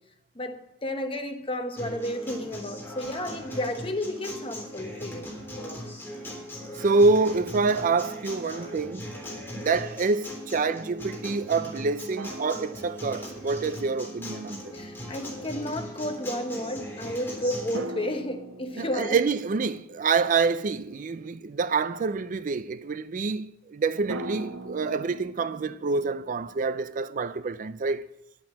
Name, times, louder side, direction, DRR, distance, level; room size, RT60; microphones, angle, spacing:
voice 1, 0.3-5.4 14.7-19.2, left 1 dB, 30° left, 1.1 m, -32 dB
Acoustic guitar, 1.8-17.8, equal, 10° left, 3.4 m, -39 dB
voice 2, 6.8-9.0 9.5-14.7 18.8-28.0, right 4 dB, 45° right, 0.4 m, -26 dB
sound 1, 12.2-13.7 17.7-21.4 24.1-26.8, right 2 dB, 80° right, 0.8 m, -41 dB
10.5 x 8.6 x 7.3 m
head